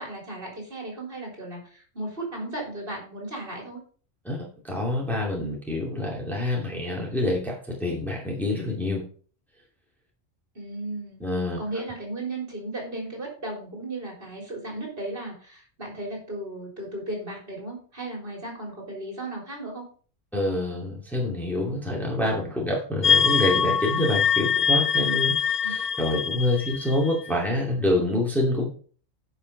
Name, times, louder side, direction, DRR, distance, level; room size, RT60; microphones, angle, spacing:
voice 1, 0.0-3.8 10.6-11.3 11.6-19.9 25.6-25.7, right 2 dB, 45° right, 0 dB, 3.9 m, -35 dB
voice 2, 4.6-9.0 11.2-11.6 20.3-28.7, left 1 dB, ahead, -2 dB, 2.4 m, -26 dB
sound 1, 23.0-27.4, left 7 dB, 55° left, 0.9 m, -24 dB
10.5 x 5.7 x 5.3 m, 0.43 s
omnidirectional pair, 1.3 m